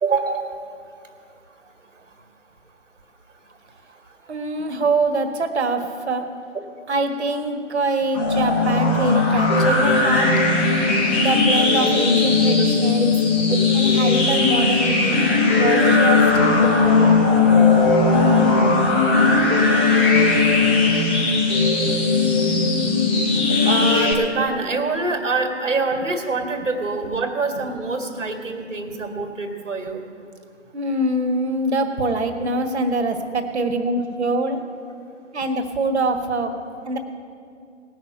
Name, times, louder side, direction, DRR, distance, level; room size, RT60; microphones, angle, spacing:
voice 1, 0.0-0.5 6.9-7.0 13.0-13.1 16.6-16.7 23.6-30.0, right 3 dB, 85° right, 4 dB, 2.2 m, -25 dB
voice 2, 4.3-6.3 6.9-10.3 11.2-13.1 13.7-17.3 30.7-34.6 35.3-36.5 36.9-37.0, right 2 dB, 60° right, 5 dB, 1.7 m, -24 dB
sound 1, 8.1-24.1, left 3 dB, 10° left, 0.5 m, -17 dB
17.5 x 6.4 x 9.0 m, 2.4 s
figure-of-eight pair, 145°, 37 cm